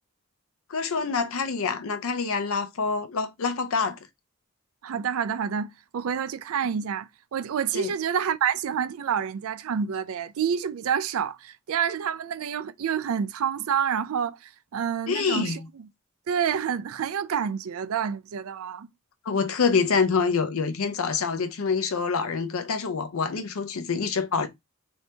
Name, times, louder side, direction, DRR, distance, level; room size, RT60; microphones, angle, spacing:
voice 1, 0.7-4.0 7.7-7.9 15.1-15.7 19.2-24.5, left 5 dB, 70° left, 0.6 m, -26 dB
voice 2, 4.8-15.6 16.3-18.9, right 7 dB, 70° right, 0.4 m, -28 dB
2.8 x 2.7 x 3.3 m
head